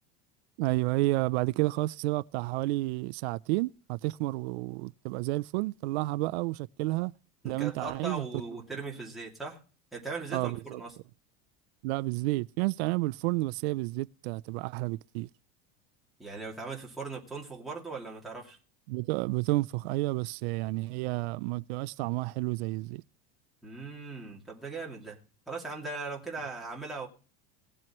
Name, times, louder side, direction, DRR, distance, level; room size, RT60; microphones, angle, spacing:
voice 1, 0.6-7.1 7.4-8.4 10.3-10.8 11.8-15.3 18.9-23.0, right 20 dB, 90° right, 0.5 m, -31 dB
voice 2, 7.4-9.6 9.9-10.9 16.2-18.6 23.6-25.2 25.5-27.1, right 3 dB, ahead, 2.4 m, -39 dB
19.0 x 7.6 x 3.0 m
cardioid pair, 165°, 32 cm